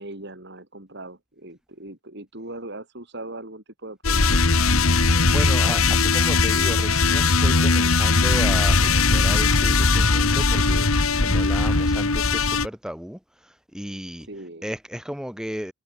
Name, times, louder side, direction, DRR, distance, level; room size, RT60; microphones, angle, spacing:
voice 1, 0.0-4.4 11.0-11.4 14.2-14.7, right 2 dB, 55° right, 5.3 m, -40 dB
sound 1, 4.0-12.7, left 3 dB, 85° left, 2.1 m, -19 dB
voice 2, 5.3-13.2 13.7-14.3 14.6-15.7, equal, 5° right, 2.5 m, -34 dB
head